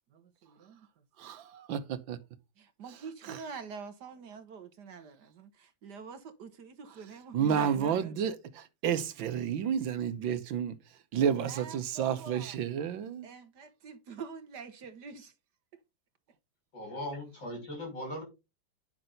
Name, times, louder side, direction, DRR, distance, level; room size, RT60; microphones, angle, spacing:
voice 1, 0.1-1.3 2.6-8.3 11.4-12.6 13.2-15.3, right 5 dB, 60° right, 1.6 m, -46 dB
voice 2, 1.2-2.2 3.2-3.4 7.3-10.8 11.1-13.3, right 8 dB, 80° right, 1.7 m, -31 dB
voice 3, 16.7-18.2, left 1 dB, 65° left, 7.1 m, -39 dB
10.0 x 6.0 x 4.0 m
omnidirectional pair, 2.1 m